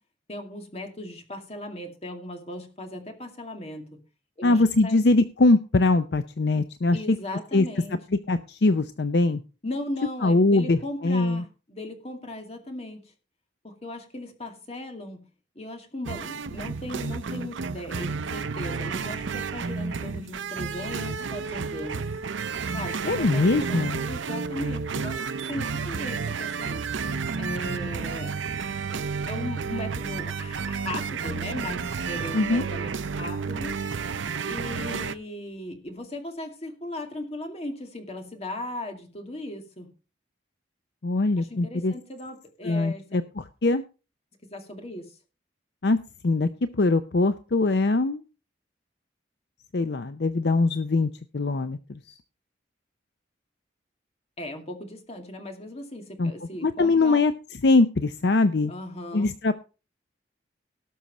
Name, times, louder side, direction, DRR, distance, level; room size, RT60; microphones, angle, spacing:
voice 1, 0.3-4.0 4.4-5.0 6.9-8.0 9.6-13.0 13.6-15.3 15.6-22.0 22.7-23.8 24.1-25.2 25.5-26.8 27.4-28.3 28.9-29.0 29.3-33.8 34.5-39.9 41.4-43.2 44.4-45.2 54.4-57.3 58.7-59.3, left 1 dB, 35° left, 4 dB, 2.3 m, -37 dB
voice 2, 4.4-7.2 7.5-7.7 8.3-9.4 10.2-11.4 23.0-24.0 32.3-32.6 41.0-41.9 42.6-43.8 45.8-46.0 46.2-46.5 46.7-48.2 49.7-52.2 56.2-56.3 56.6-57.3 57.6-58.7 59.1-59.5, left 3 dB, 60° left, 11 dB, 0.6 m, -22 dB
sound 1, 16.0-35.1, right 5 dB, 85° right, 0.6 m, -31 dB
18.0 x 6.3 x 4.1 m, 0.33 s
head